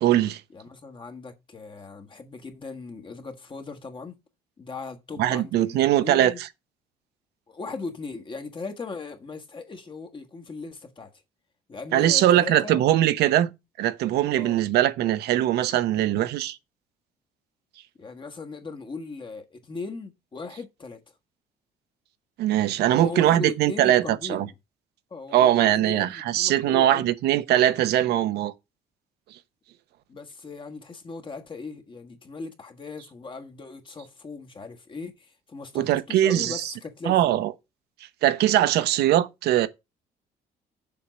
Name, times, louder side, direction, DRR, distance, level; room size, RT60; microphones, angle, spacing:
voice 1, 0.0-0.4 5.2-6.5 11.9-13.5 13.8-16.6 22.4-24.5 25.3-28.5 35.7-36.7 37.0-37.5 38.2-39.7, right 12 dB, 75° right, 0.9 m, -21 dB
voice 2, 0.5-4.2 4.6-6.4 7.5-11.1 11.7-12.8 14.4-14.6 18.0-21.0 22.9-24.5 25.1-27.1 30.1-37.4, left 4 dB, 30° left, 1.5 m, -38 dB
7.1 x 4.6 x 6.3 m
cardioid pair, 110°, 17 cm